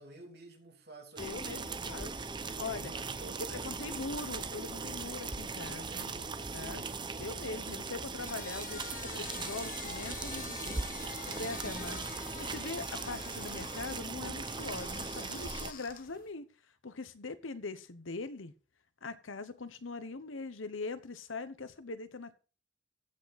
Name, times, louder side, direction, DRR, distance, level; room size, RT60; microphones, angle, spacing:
voice 1, 0.0-1.9 2.5-4.1 5.8-7.9, right 2 dB, 55° right, 2.9 m, -52 dB
voice 2, 1.2-2.9 3.6-6.1 6.5-6.8 7.2-10.8 11.2-16.4 16.8-18.5 19.0-22.3, left 3 dB, 80° left, 1.0 m, -42 dB
sound 1, 1.2-15.7, right 4 dB, 25° right, 0.7 m, -39 dB
sound 2, 8.1-16.3, left 7 dB, 45° left, 1.2 m, -46 dB
15.0 x 6.1 x 4.1 m
head